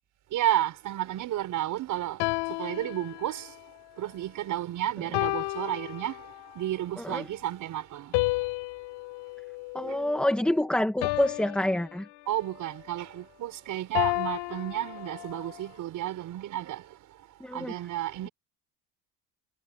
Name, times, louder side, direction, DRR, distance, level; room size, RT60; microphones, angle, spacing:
voice 1, 0.3-2.2 2.5-3.5 4.0-6.3 6.5-8.2 9.8-9.9 12.3-16.9 17.5-18.3, right 13 dB, 45° right, 6.0 m, -32 dB
sound 1, 2.2-3.6 5.1-6.5 8.1-10.5 11.0-12.5 14.0-15.5, left 23 dB, 90° left, 6.3 m, -32 dB
voice 2, 7.0-7.3 9.7-12.1 17.4-17.7, left 1 dB, 5° left, 1.4 m, -27 dB
cardioid pair, 175°, 42 cm